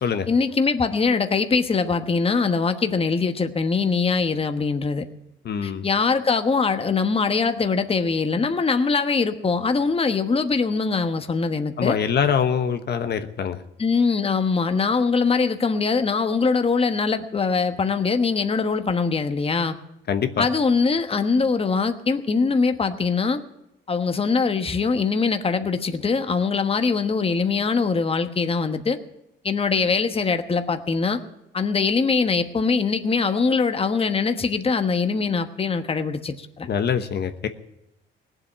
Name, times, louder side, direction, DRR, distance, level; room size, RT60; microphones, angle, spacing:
voice 1, 0.3-5.0 5.6-12.0 13.8-19.7 20.4-23.4 23.9-29.0 29.4-31.2 31.5-36.7, left 4 dB, 30° left, 8 dB, 1.2 m, -22 dB
voice 2, 5.4-5.9 11.8-13.6 20.1-20.5 36.7-37.5, left 7 dB, 55° left, 8 dB, 1.1 m, -24 dB
18.0 x 7.9 x 8.8 m, 0.87 s
cardioid pair, 90°, 20 cm